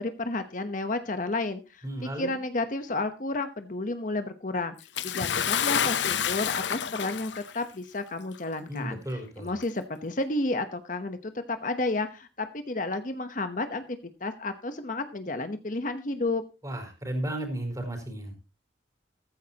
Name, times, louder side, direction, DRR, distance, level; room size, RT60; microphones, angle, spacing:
voice 1, 0.0-1.8 2.2-4.7 5.0-9.0 9.4-13.8 14.2-16.4, left 2 dB, 45° left, 9 dB, 1.0 m, -31 dB
voice 2, 1.8-2.3 8.7-9.5 16.6-18.4, right 1 dB, 20° right, 4 dB, 4.6 m, -34 dB
Bathtub (filling or washing) / Splash splatter, 5.0-7.6 8.5-8.6 9.6-9.7, left 8 dB, 80° left, 0.7 m, -28 dB
15.0 x 14.0 x 2.9 m, 0.30 s
head